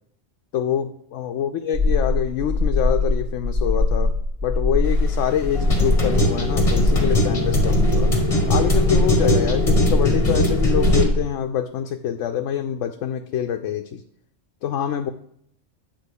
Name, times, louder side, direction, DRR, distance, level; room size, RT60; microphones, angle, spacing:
voice 1, 0.5-4.1 4.4-8.1 8.5-14.0 14.6-15.1, left 9 dB, 75° left, 5 dB, 0.9 m, -25 dB
sound 1, 1.7-11.2, left 2 dB, 60° right, 2.3 m, -22 dB
sound 2, 4.8-11.0, left 1 dB, 30° left, 1.4 m, -21 dB
9.0 x 3.7 x 6.7 m, 0.68 s
omnidirectional pair, 1.3 m